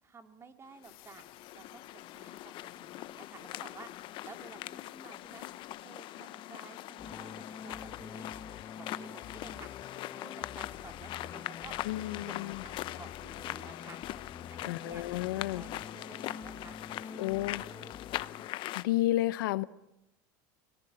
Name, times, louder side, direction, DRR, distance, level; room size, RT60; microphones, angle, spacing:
voice 1, 0.0-1.2 1.5-3.9 4.2-5.5 5.8-8.3 8.8-9.7 10.2-11.7 12.3-12.4 12.6-14.0 14.5-15.0 15.5-17.9, right 5 dB, 25° right, 2.6 m, -53 dB
sound 1, 0.8-5.8, left 15 dB, 65° left, 3.3 m, -63 dB
sound 2, 0.8-18.8, left 15 dB, 50° left, 0.9 m, -42 dB
sound 3, 7.0-18.5, left 6 dB, 30° left, 1.1 m, -47 dB
voice 2, 11.8-12.6 14.6-15.7 17.2-17.6 18.7-19.6, left 16 dB, 85° left, 0.9 m, -31 dB
25.5 x 19.0 x 8.9 m
supercardioid pair, 120°, 11 cm